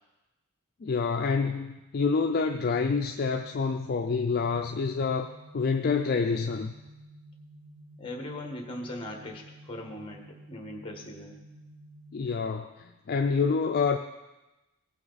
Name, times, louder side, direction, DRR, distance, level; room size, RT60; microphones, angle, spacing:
voice 1, 0.8-6.7 12.1-14.0, left 5 dB, 45° left, 5 dB, 0.4 m, -27 dB
sound 1, 2.3-12.3, right 1 dB, 60° right, 4.0 m, -51 dB
voice 2, 8.0-11.4, left 1 dB, 25° left, 2 dB, 1.4 m, -39 dB
16.5 x 5.9 x 4.0 m, 1.1 s
head